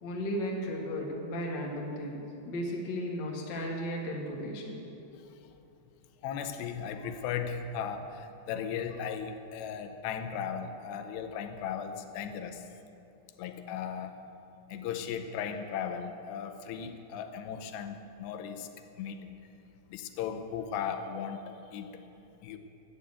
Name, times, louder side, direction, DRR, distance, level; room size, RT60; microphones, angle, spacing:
voice 1, 0.0-4.8, equal, 45° left, -1 dB, 1.4 m, -35 dB
voice 2, 6.2-12.6 13.4-14.2 14.7-18.7 19.0-19.3 19.9-21.9 22.4-22.6, left 7 dB, 90° left, 7 dB, 3.0 m, -37 dB
11.5 x 9.2 x 8.2 m, 2.8 s
omnidirectional pair, 4.8 m